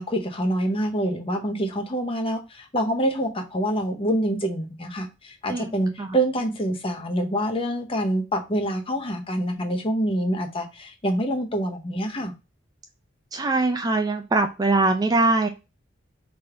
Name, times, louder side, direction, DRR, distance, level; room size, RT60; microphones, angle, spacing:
voice 1, 0.0-12.3, right 1 dB, 30° left, 0.7 m, -26 dB
voice 2, 5.5-6.2 13.3-15.5, right 2 dB, 20° right, 0.3 m, -22 dB
3.4 x 2.6 x 4.5 m
head